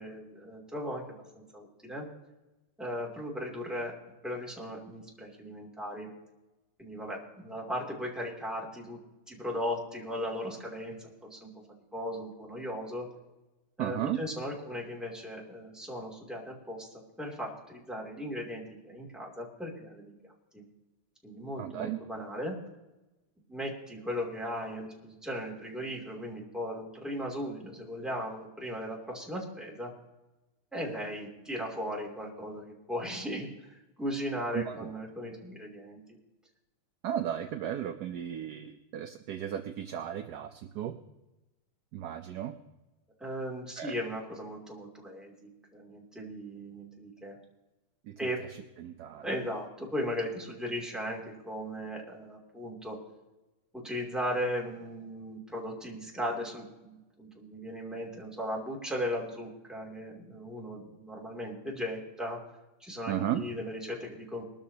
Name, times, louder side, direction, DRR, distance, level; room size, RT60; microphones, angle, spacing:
voice 1, 0.0-2.1 2.8-3.9 4.2-6.1 6.8-9.0 9.3-11.5 11.9-13.1 13.8-16.9 17.2-20.1 20.5-20.6 21.2-22.6 23.5-29.9 30.7-36.0 43.2-47.4 48.2-48.5 49.2-53.0 53.7-62.4 62.8-64.4, equal, ahead, -2 dB, 2.6 m, -37 dB
voice 2, 13.8-14.2 21.6-22.0 34.5-34.9 37.0-41.0 41.9-42.5 43.8-43.9 48.1-48.2 48.5-49.3 63.1-63.4, right 11 dB, 70° right, 7 dB, 0.9 m, -35 dB
22.0 x 13.0 x 2.8 m, 1.0 s
omnidirectional pair, 2.3 m